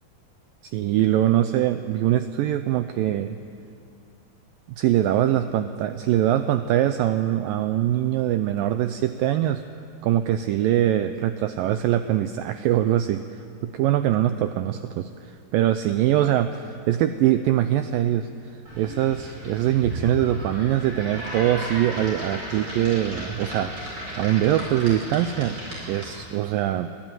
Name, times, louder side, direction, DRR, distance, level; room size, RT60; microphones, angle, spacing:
voice 1, 0.7-3.4 4.8-9.6 10.0-18.3 18.8-23.9 24.2-25.6 25.9-26.9, right 12 dB, 80° right, 10 dB, 2.0 m, -23 dB
sound 1, 18.7-26.4, right 1 dB, 30° right, 6.5 m, -35 dB
23.0 x 14.5 x 9.1 m, 2.4 s
omnidirectional pair, 4.6 m